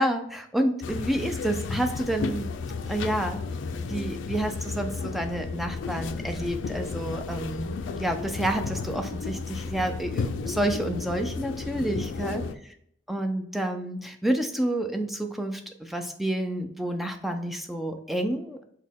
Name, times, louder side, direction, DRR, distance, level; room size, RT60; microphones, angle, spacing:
voice 1, 0.0-2.5 2.9-3.4 3.8-12.5 13.1-18.6, right 1 dB, ahead, 5 dB, 0.3 m, -29 dB
sound 1, 0.8-12.5, left 4 dB, 85° left, 0.3 m, -33 dB
6.2 x 2.2 x 3.5 m, 0.69 s
head